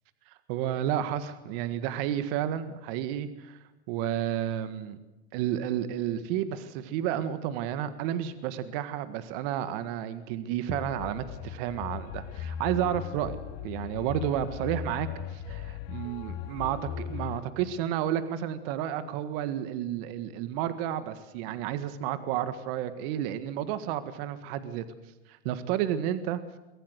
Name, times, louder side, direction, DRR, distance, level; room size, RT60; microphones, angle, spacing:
voice 1, 0.5-3.6 3.9-5.0 5.3-13.4 13.6-24.8 25.3-26.4, right 10 dB, 60° right, 11 dB, 1.7 m, -31 dB
sound 1, 10.7-17.4, left 9 dB, 50° left, 2.0 m, -38 dB
23.5 x 15.5 x 8.0 m, 1.0 s
hypercardioid pair, 120°, 33 cm